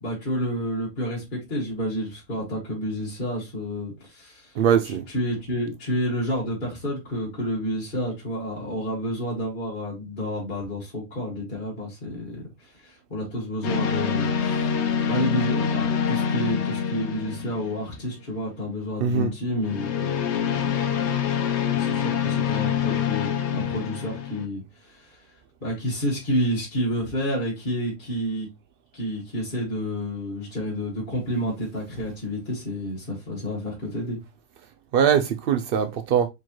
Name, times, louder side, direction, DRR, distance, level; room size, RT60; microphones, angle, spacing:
voice 1, 0.0-4.5 5.1-14.8 15.1-21.1 21.7-25.3 25.6-28.5 28.9-34.2, equal, 35° left, 2.0 m, -30 dB
voice 2, 4.6-5.0 19.0-19.3 34.9-36.3, right 8 dB, 85° right, 0.5 m, -21 dB
sound 1, 13.6-18.1 19.6-24.4, left 7 dB, 60° left, 0.9 m, -26 dB
4.5 x 3.8 x 2.9 m
omnidirectional pair, 1.5 m